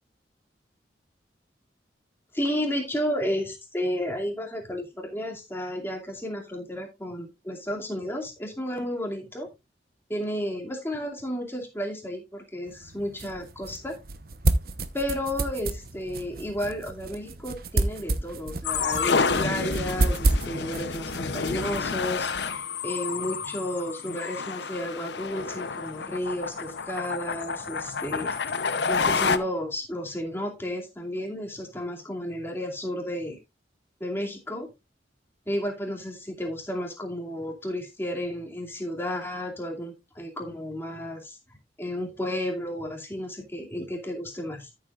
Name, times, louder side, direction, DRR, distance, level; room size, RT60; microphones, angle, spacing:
voice 1, 2.3-9.5 10.1-14.0 14.9-28.6 28.9-33.4 34.0-34.7 35.5-41.4 41.8-44.7, equal, 15° left, 1 dB, 2.5 m, -32 dB
sound 1, 12.7-22.6, right 2 dB, 55° right, 1.0 m, -30 dB
sound 2, 18.6-29.4, left 5 dB, 75° left, 0.8 m, -29 dB
13.5 x 7.4 x 2.5 m, 0.23 s
head